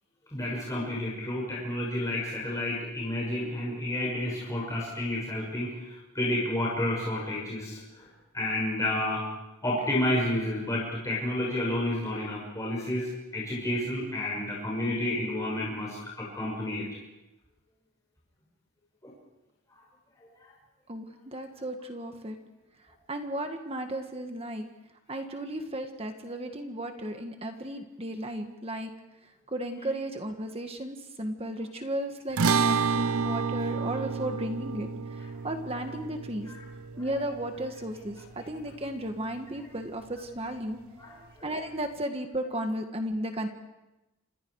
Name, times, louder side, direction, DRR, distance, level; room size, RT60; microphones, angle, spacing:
voice 1, 0.3-8.1 8.3-9.2 9.6-16.8 19.0-19.1 36.5-36.6 37.0-37.1 38.4-38.5 41.0-41.5, left 1 dB, 15° left, -5 dB, 6.2 m, -30 dB
voice 2, 20.9-22.4 23.1-24.6 25.1-28.9 29.5-36.5 37.0-40.8 41.4-43.5, right 1 dB, 25° right, 5 dB, 1.7 m, -34 dB
sound 1, 32.4-38.9, right 5 dB, 75° right, 0.8 m, -30 dB
30.0 x 27.5 x 4.8 m, 0.98 s
head